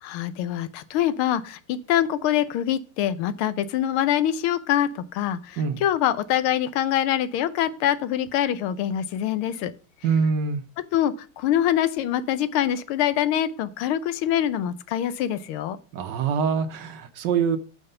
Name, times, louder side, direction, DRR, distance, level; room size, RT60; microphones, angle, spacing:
voice 1, 0.0-9.7 10.9-15.8, left 11 dB, 85° left, 1.6 m, -24 dB
voice 2, 10.0-10.6 15.9-17.6, right 6 dB, 65° right, 1.3 m, -24 dB
9.4 x 5.6 x 6.6 m
omnidirectional pair, 2.3 m